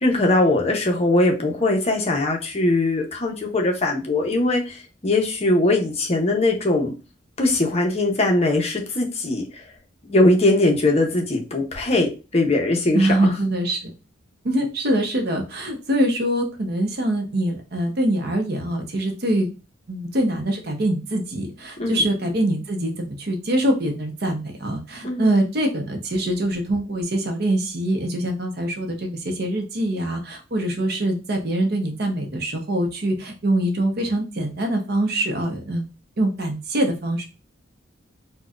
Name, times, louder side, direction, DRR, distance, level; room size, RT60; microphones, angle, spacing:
voice 1, 0.0-4.8 5.0-6.9 7.4-9.5 10.0-13.3 21.8-22.0 25.0-25.3, left 2 dB, 30° left, 1 dB, 0.7 m, -20 dB
voice 2, 12.9-13.9 14.4-19.5 19.9-35.9 36.2-37.2, right 1 dB, 55° right, 4 dB, 0.7 m, -24 dB
4.1 x 2.2 x 2.4 m, 0.31 s
head